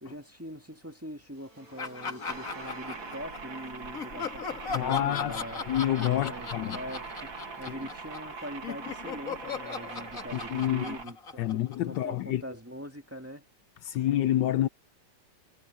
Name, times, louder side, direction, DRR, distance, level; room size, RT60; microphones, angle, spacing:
voice 1, 0.0-5.6 6.2-7.3 7.6-13.5, equal, 10° right, 1.7 m, -42 dB
sound 1, 1.3-7.3, equal, 50° right, 8.5 m, -54 dB
Laughter, 1.8-3.5 3.9-8.3 8.6-12.2, left 5 dB, 45° left, 2.2 m, -38 dB
sound 2, 2.3-11.0, right 4 dB, 80° right, 3.1 m, -42 dB
voice 2, 4.7-6.8 10.3-11.0 11.4-12.4 13.8-14.7, left 12 dB, 75° left, 1.2 m, -28 dB
omnidirectional pair, 2.1 m